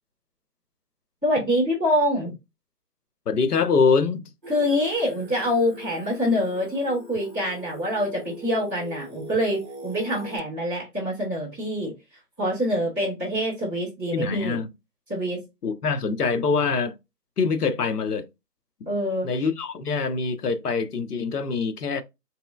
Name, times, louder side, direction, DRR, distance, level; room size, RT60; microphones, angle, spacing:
voice 1, 1.2-2.3 4.5-11.9 12.4-14.6 15.1-15.4 18.8-19.3, equal, 5° left, 1.0 m, -25 dB
voice 2, 3.3-4.2 14.1-14.7 15.6-16.9 17.4-18.3 18.8-18.9 19.2-22.0, left 5 dB, 70° left, 0.7 m, -24 dB
Singing, 4.4-10.4, right 1 dB, 30° right, 0.8 m, -42 dB
3.0 x 2.9 x 2.3 m
figure-of-eight pair, 160°, 48 cm